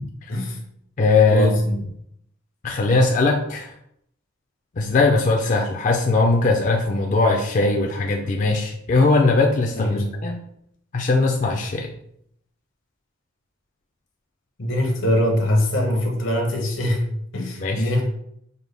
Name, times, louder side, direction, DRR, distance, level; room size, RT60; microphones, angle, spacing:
voice 1, 1.0-1.8 2.6-3.7 4.8-10.4 10.9-11.9 17.6-17.9, left 3 dB, 40° left, 1 dB, 0.4 m, -20 dB
voice 2, 9.7-10.1 14.6-17.0 17.3-18.0, left 1 dB, 80° left, 2 dB, 0.9 m, -22 dB
5.2 x 2.2 x 3.3 m, 0.73 s
head